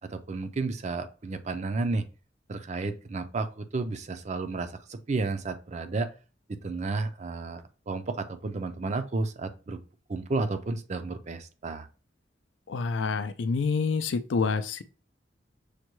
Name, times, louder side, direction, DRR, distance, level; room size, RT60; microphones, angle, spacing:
voice 1, 0.1-2.0 2.5-6.1 6.5-9.8 10.1-11.9, right 3 dB, 40° right, 0.4 m, -32 dB
voice 2, 12.7-14.8, left 5 dB, 85° left, 0.4 m, -27 dB
6.5 x 2.2 x 3.0 m
head